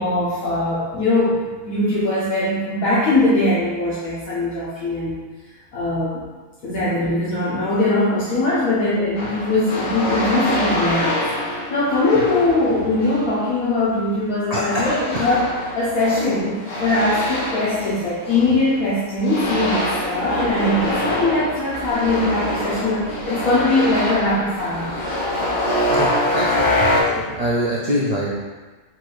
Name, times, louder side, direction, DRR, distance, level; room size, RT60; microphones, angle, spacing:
voice 1, 0.0-5.2 5.7-6.2 6.6-15.5 15.7-25.0, left 2 dB, 80° left, -9 dB, 1.3 m, -21 dB
sound 1, 9.1-13.4 14.7-18.8 19.2-27.0, left 1 dB, 45° left, 1.4 m, -25 dB
voice 2, 14.5-15.3 25.9-28.4, equal, 85° right, -6 dB, 0.3 m, -24 dB
4.1 x 2.5 x 4.6 m, 1.3 s
omnidirectional pair, 1.4 m